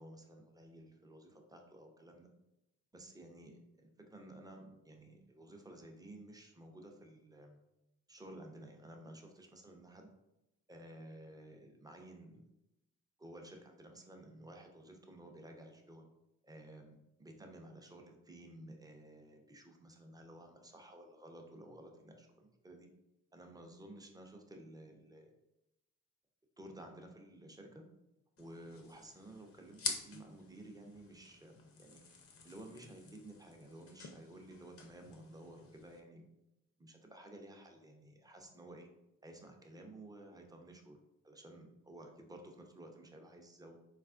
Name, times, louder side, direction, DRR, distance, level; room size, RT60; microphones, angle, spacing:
voice 1, 0.0-2.3 2.9-7.6 8.1-10.1 10.7-12.4 13.2-16.0 16.4-22.9 23.3-25.3 26.6-27.8 28.4-32.0 32.4-36.2 36.8-38.9 39.2-41.0 41.2-43.8, right 1 dB, 10° right, 2 dB, 0.6 m, -54 dB
sound 1, 28.4-36.0, left 5 dB, 40° left, 0.6 m, -48 dB
3.9 x 2.4 x 2.5 m, 0.91 s
hypercardioid pair, 50°, 36 cm